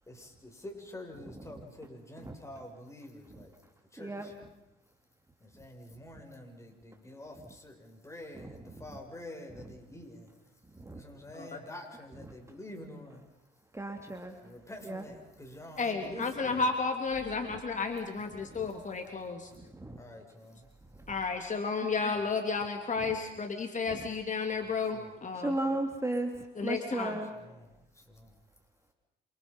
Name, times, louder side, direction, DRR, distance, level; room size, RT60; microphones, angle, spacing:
voice 1, 0.1-3.5 3.9-4.3 5.4-10.3 10.9-13.2 14.4-16.7 20.0-20.7 24.5-25.1 27.4-28.3, left 1 dB, 15° left, 2 dB, 7.2 m, -47 dB
voice 2, 4.0-4.3 8.3-9.0 10.7-11.0 13.7-14.4 14.8-15.0 17.5-17.6 18.4-18.7 19.6-20.0 21.8-21.9 23.9-24.0 25.3-26.3 26.6-27.3, right 1 dB, 15° right, 4 dB, 3.3 m, -35 dB
voice 3, 11.3-11.6 15.8-19.5 21.1-25.6 26.5-27.2, left 4 dB, 40° left, 4 dB, 3.3 m, -32 dB
28.0 x 28.0 x 5.6 m, 0.90 s
cardioid pair, 90°, 20 cm